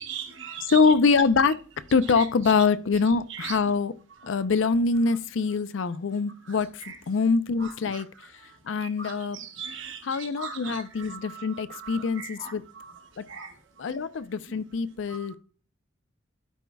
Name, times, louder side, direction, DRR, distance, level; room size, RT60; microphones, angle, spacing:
voice 1, 0.0-0.7 3.4-3.5 8.8-10.8 11.1-11.4 12.2-12.5 13.3-13.5, right 6 dB, 85° right, 1.3 m, -38 dB
voice 2, 0.6-1.6 1.9-3.9 4.2-8.1 8.6-9.4 10.0-12.6 13.2-13.3 13.8-15.4, left 4 dB, 80° left, 0.5 m, -24 dB
12.5 x 4.5 x 2.3 m
head